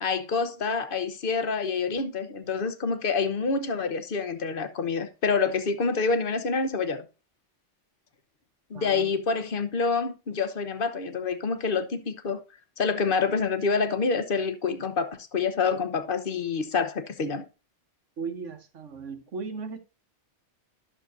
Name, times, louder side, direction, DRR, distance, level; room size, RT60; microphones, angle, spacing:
voice 1, 0.0-7.1 8.7-12.4 12.8-17.4, left 5 dB, 50° left, 1.1 m, -27 dB
voice 2, 8.7-9.1 18.2-19.8, right 5 dB, 90° right, 1.5 m, -36 dB
11.0 x 6.6 x 2.6 m
omnidirectional pair, 1.2 m